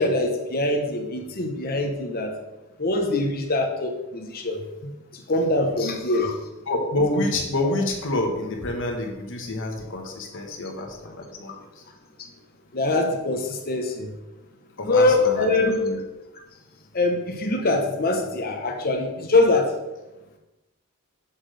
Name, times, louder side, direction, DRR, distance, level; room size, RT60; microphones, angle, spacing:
voice 1, 0.0-2.3 2.8-4.6 5.3-6.3 7.2-7.3 7.6-7.7 12.7-14.1 14.8-15.8 16.9-19.7, left 2 dB, 45° left, 2 dB, 0.9 m, -23 dB
voice 2, 6.6-11.8 14.8-16.0, left 2 dB, 60° left, 3 dB, 1.3 m, -28 dB
7.7 x 7.3 x 3.3 m, 1.0 s
head